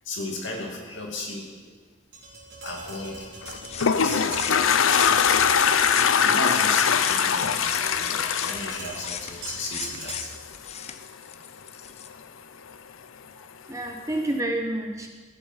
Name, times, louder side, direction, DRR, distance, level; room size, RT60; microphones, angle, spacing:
voice 1, 0.0-1.8 2.6-3.3 3.9-4.8 6.1-10.3, left 2 dB, 65° left, 0 dB, 2.5 m, -35 dB
Tap, 2.1-10.4, right 2 dB, 55° right, 3.9 m, -40 dB
Toilet flush, 3.4-9.8, left 7 dB, 80° left, 0.6 m, -22 dB
sound 1, 3.5-5.5 5.8-12.1, left 8 dB, 30° left, 0.5 m, -37 dB
voice 2, 13.4-15.1, right 1 dB, 15° right, 2 dB, 1.0 m, -29 dB
15.5 x 8.6 x 5.7 m, 1.4 s
head